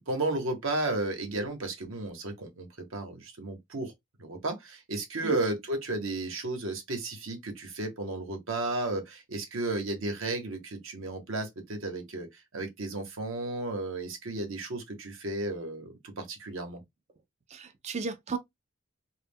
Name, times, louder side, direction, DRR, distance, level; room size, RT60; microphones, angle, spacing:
voice 1, 0.1-3.9 4.2-16.8, right 2 dB, 70° right, 0.8 m, -33 dB
voice 2, 17.5-18.4, right 4 dB, 30° right, 0.3 m, -34 dB
2.1 x 2.1 x 3.3 m
head